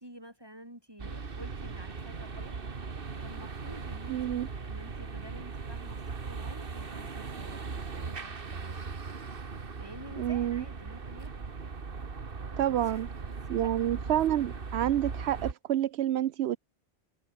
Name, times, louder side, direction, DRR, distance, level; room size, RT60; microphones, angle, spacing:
voice 1, 0.0-2.5 3.2-8.8 9.8-11.4 12.7-13.0 13.4-13.7, right 1 dB, 20° right, 7.3 m, -50 dB
sound 1, 1.0-15.5, right 4 dB, 60° right, 1.8 m, -39 dB
voice 2, 4.1-4.5 10.2-10.6 12.6-13.1 13.5-16.6, right 12 dB, 80° right, 0.9 m, -28 dB
open air
omnidirectional pair, 1.1 m